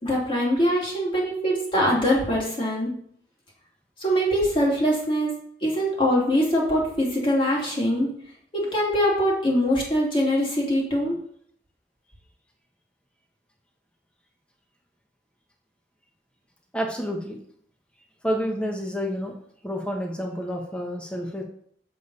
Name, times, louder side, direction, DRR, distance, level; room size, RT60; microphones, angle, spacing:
voice 1, 0.0-2.9 4.0-5.3 5.6-8.1 8.5-11.2, equal, 30° left, -3 dB, 2.9 m, -23 dB
voice 2, 16.7-17.4 18.2-19.3 19.6-21.4, equal, 5° left, 0 dB, 1.5 m, -29 dB
7.7 x 7.1 x 4.1 m, 0.63 s
head